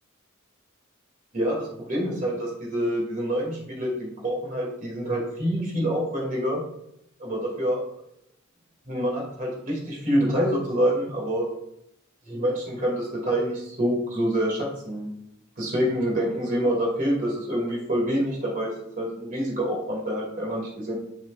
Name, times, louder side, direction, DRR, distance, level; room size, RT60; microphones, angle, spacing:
voice 1, 1.3-6.6 7.2-7.8 8.9-11.5 12.3-15.1 15.6-20.9, equal, 40° right, -2 dB, 2.4 m, -26 dB
6.9 x 6.6 x 2.5 m, 0.77 s
head